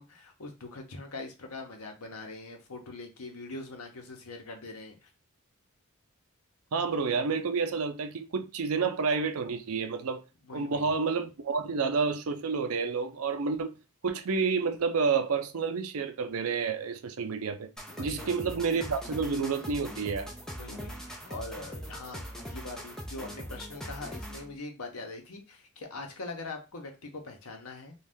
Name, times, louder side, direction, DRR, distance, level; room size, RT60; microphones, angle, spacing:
voice 1, 0.0-5.1 10.4-10.9 17.9-18.4 20.6-27.9, left 3 dB, 85° left, 0.8 m, -42 dB
voice 2, 6.7-10.2 10.5-13.7 14.0-17.7 18.0-20.3, right 5 dB, 80° right, 0.5 m, -29 dB
sound 1, 17.8-24.6, equal, 5° left, 0.4 m, -41 dB
2.6 x 2.3 x 3.5 m
head